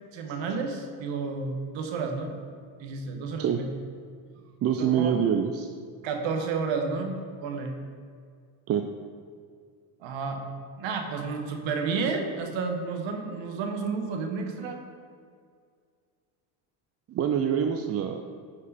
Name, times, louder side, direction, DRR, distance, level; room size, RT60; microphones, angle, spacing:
voice 1, 0.1-2.3 2.8-3.7 4.8-5.2 6.0-7.8 10.0-10.4 10.8-14.8, right 4 dB, 65° right, 4 dB, 1.3 m, -31 dB
voice 2, 4.6-5.7 8.7-8.8 17.1-18.2, right 8 dB, 35° right, 5 dB, 0.4 m, -25 dB
9.6 x 5.3 x 4.1 m, 2.1 s
supercardioid pair, 90°, 49 cm